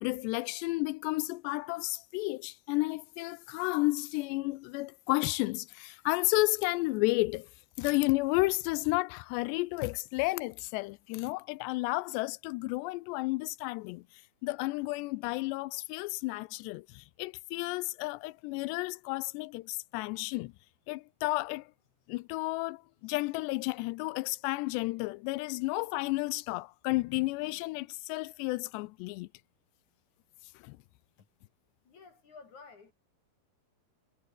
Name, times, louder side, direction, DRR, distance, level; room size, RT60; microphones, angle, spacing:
voice 1, 0.0-7.5 7.8-14.0 14.4-20.5 20.9-21.7 22.1-29.3 30.6-30.8, left 22 dB, 85° left, 2.7 m, -32 dB
voice 2, 31.8-32.9, left 4 dB, 45° left, 4.0 m, -52 dB
omnidirectional pair, 4.9 m